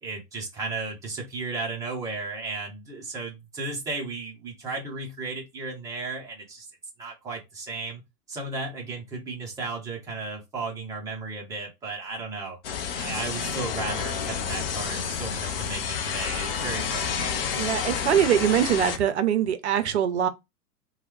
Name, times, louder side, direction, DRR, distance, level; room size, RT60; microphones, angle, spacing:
voice 1, 0.0-6.7 7.0-8.0 8.3-12.6 13.0-17.6, right 3 dB, 5° right, 0.6 m, -34 dB
sound 1, 12.6-19.0, left 7 dB, 40° left, 0.5 m, -30 dB
voice 2, 17.6-20.3, right 9 dB, 45° right, 0.6 m, -23 dB
3.0 x 2.3 x 3.2 m
figure-of-eight pair, 105°, 48 cm